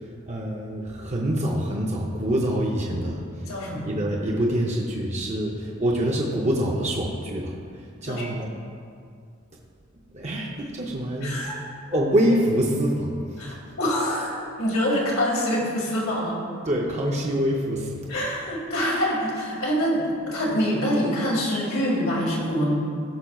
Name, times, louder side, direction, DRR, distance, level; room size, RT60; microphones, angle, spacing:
voice 1, 0.0-3.2 3.8-8.5 10.1-11.4 11.9-13.6 16.7-18.1, right 1 dB, 35° right, -2 dB, 0.7 m, -25 dB
voice 2, 3.5-3.9 8.0-8.3 11.2-11.6 13.4-16.4 18.1-22.7, equal, 75° left, -3 dB, 1.9 m, -25 dB
14.5 x 5.8 x 2.4 m, 2.3 s
head